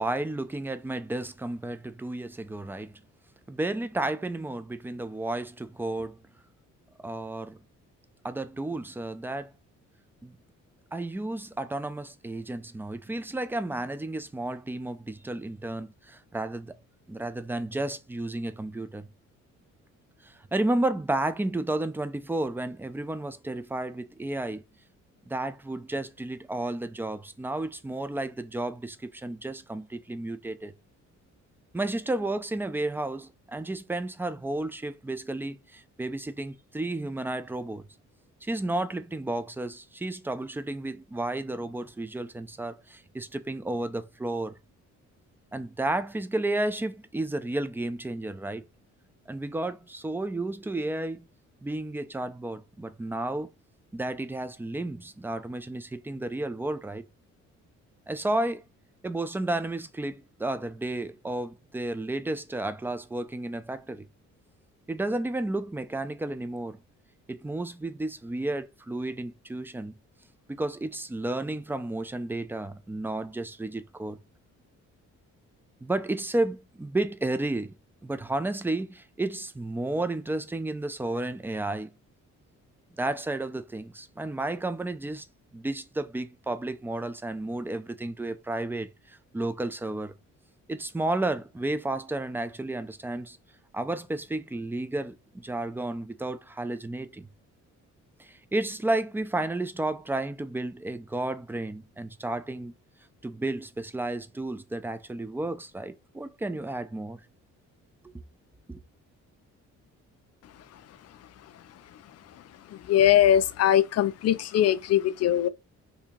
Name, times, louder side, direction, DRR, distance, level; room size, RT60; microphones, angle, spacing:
voice 1, 0.0-2.9 3.5-6.2 7.0-7.6 8.2-9.5 10.2-10.4 10.9-16.7 17.1-19.1 20.2-24.6 25.3-30.7 31.7-37.9 38.4-44.5 45.5-48.6 49.3-51.3 51.6-53.5 53.9-57.0 58.1-58.6 59.0-64.1 64.9-66.8 67.3-70.0 70.5-74.2 75.8-77.7 78.0-81.9 83.0-85.2 85.5-90.1 90.7-93.4 93.7-97.3 98.2-102.7 103.2-107.2 108.7-108.8, right 2 dB, 5° right, 0.4 m, -32 dB
voice 2, 112.7-115.5, left 11 dB, 55° left, 0.5 m, -21 dB
2.8 x 2.8 x 3.6 m
cardioid pair, 90°, 30 cm